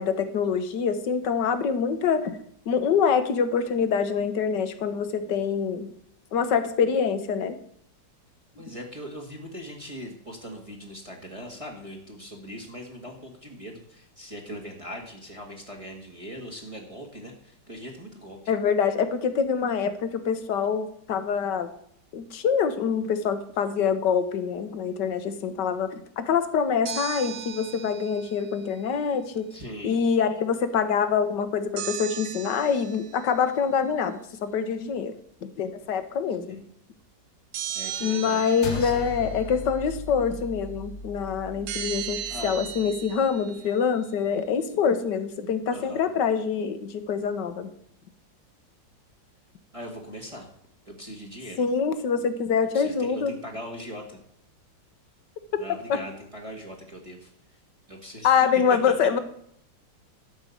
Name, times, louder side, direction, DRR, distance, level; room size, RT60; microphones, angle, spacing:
voice 1, 0.0-2.4 2.7-5.9 6.3-7.6 18.5-21.7 22.1-29.5 29.8-35.1 35.4-36.6 38.0-47.7 51.6-53.3 55.9-56.0 58.2-59.2, left 6 dB, 70° left, 11 dB, 1.6 m, -25 dB
voice 2, 8.6-18.5 29.5-30.0 36.5-36.7 37.7-39.0 42.3-42.6 45.7-46.0 49.7-50.5 50.9-51.6 52.7-54.2 55.6-57.3 57.9-58.8, equal, 20° right, 0 dB, 1.7 m, -40 dB
sound 1, 26.9-28.6 31.8-33.2 37.5-39.4 41.7-43.9, right 10 dB, 75° right, 1.4 m, -36 dB
sound 2, 38.6-43.2, left 3 dB, 50° left, 0.8 m, -38 dB
12.0 x 5.4 x 8.4 m, 0.68 s
omnidirectional pair, 2.0 m